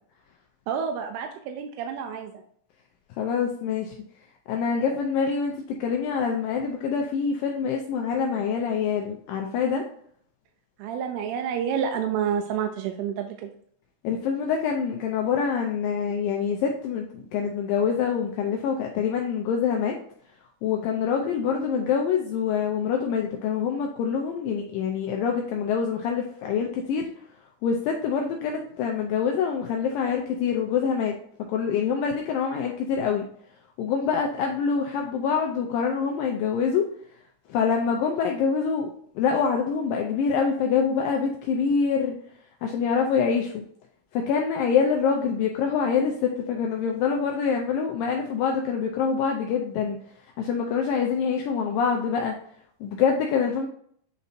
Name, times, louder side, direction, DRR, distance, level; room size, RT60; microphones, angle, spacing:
voice 1, 0.7-2.4 10.8-13.5, right 7 dB, 85° right, 4 dB, 2.5 m, -29 dB
voice 2, 3.2-4.0 4.5-9.8 14.0-20.0 20.6-27.1 27.6-33.3 33.8-36.9 37.5-38.9 39.2-42.2 42.6-43.7 44.1-50.0 50.4-52.4 52.8-53.7, left 6 dB, 85° left, 2 dB, 2.0 m, -25 dB
8.4 x 4.1 x 2.7 m, 0.63 s
omnidirectional pair, 4.6 m